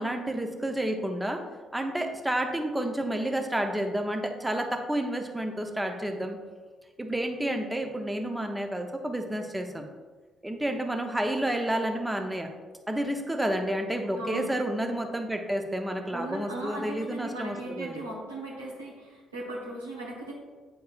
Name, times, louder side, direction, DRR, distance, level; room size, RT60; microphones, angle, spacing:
voice 1, 0.0-1.4 1.7-6.4 7.0-9.8 10.4-12.5 12.9-18.0, right 1 dB, 10° right, 4 dB, 0.8 m, -30 dB
voice 2, 14.2-14.5 16.0-20.3, right 1 dB, 90° right, -5 dB, 1.1 m, -37 dB
8.3 x 4.6 x 2.5 m, 1.4 s
figure-of-eight pair, 45°, 0 cm